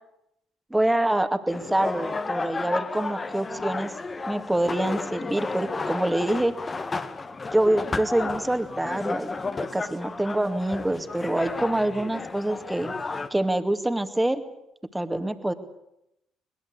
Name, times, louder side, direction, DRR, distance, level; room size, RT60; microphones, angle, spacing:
voice 1, 0.7-3.9 4.3-6.5 7.5-9.3 9.7-12.9 13.3-14.4 14.9-15.5, right 1 dB, 10° right, 8 dB, 2.3 m, -25 dB
sound 1, 1.5-13.3, left 3 dB, 30° left, 1.9 m, -32 dB
22.0 x 21.0 x 8.3 m, 0.82 s
hypercardioid pair, 50°, 0 cm